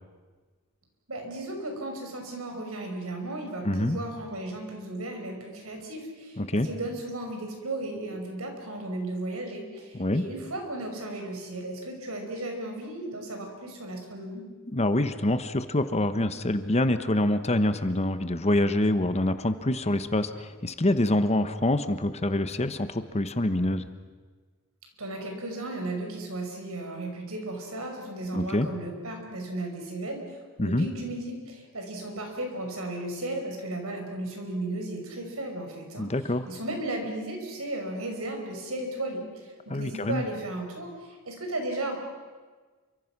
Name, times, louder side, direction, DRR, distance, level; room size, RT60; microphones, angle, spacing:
voice 1, 1.1-14.5 25.0-30.2 30.6-36.1 36.5-40.9 41.3-42.0, right 1 dB, 80° right, 3 dB, 5.7 m, -35 dB
voice 2, 3.6-4.0 6.4-6.7 9.9-10.2 14.7-23.9 28.3-28.7 30.6-30.9 36.0-36.5 39.7-40.2, left 1 dB, 30° left, 10 dB, 1.2 m, -26 dB
28.5 x 25.0 x 6.1 m, 1.4 s
head